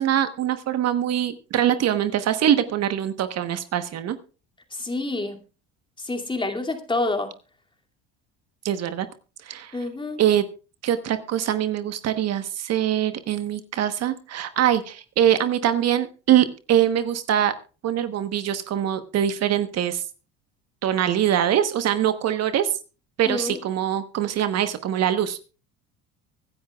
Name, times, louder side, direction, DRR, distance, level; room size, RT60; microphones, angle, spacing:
voice 1, 0.0-4.2 8.6-9.1 9.4-9.8 10.2-10.4 10.8-17.5 17.8-20.0 20.8-22.7 23.2-25.4, right 10 dB, 55° right, 10 dB, 1.1 m, -23 dB
voice 2, 4.7-5.4 6.0-7.3 9.7-10.2 23.2-23.6, left 2 dB, 15° left, 4 dB, 2.5 m, -28 dB
24.5 x 10.5 x 2.3 m, 0.34 s
supercardioid pair, 80°, 31 cm